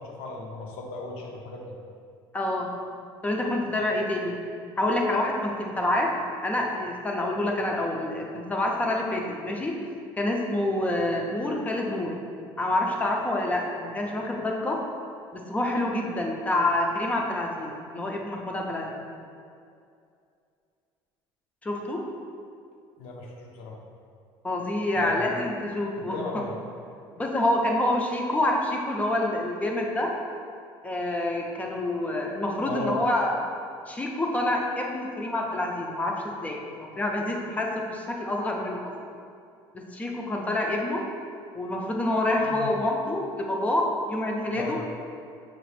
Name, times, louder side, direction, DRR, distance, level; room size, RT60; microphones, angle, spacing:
voice 1, 0.0-1.7 23.0-23.8 25.0-25.4 26.0-26.5 32.6-33.0 42.4-42.7 44.5-44.8, left 3 dB, 75° left, 0 dB, 0.7 m, -36 dB
voice 2, 2.3-2.7 3.2-4.4 4.8-6.1 6.4-9.7 10.2-12.1 12.6-14.8 15.3-19.0 21.6-22.0 24.4-26.2 27.2-30.1 30.8-33.4 33.9-38.9 39.7-41.0 41.5-44.8, left 1 dB, 15° left, 0 dB, 0.4 m, -27 dB
5.9 x 2.4 x 3.2 m, 2.4 s
cardioid pair, 145°, 10 cm